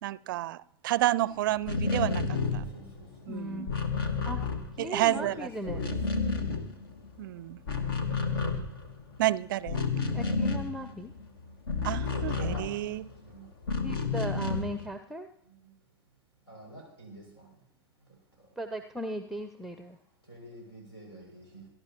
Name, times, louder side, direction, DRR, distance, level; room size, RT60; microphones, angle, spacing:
voice 1, 0.0-2.6 3.3-3.7 4.8-5.3 7.2-7.6 9.2-9.8 11.8-13.1, right 14 dB, 55° right, 0.4 m, -30 dB
sound 1, 1.6-5.2 5.5-7.2 7.5-13.1 13.6-14.9, left 4 dB, 65° left, 1.6 m, -31 dB
voice 2, 2.5-3.3 4.7-6.0 6.2-6.5 8.2-8.4 12.1-12.8 13.2-13.5 15.5-15.7 16.5-17.6 18.4-18.5 20.2-21.7, right 1 dB, 80° left, 6.4 m, -46 dB
voice 3, 3.3-3.8 4.2-4.4 4.8-5.8 10.1-11.1 13.8-15.3 18.6-20.0, equal, ahead, 0.6 m, -37 dB
27.0 x 11.0 x 3.0 m
figure-of-eight pair, 90°, 13 cm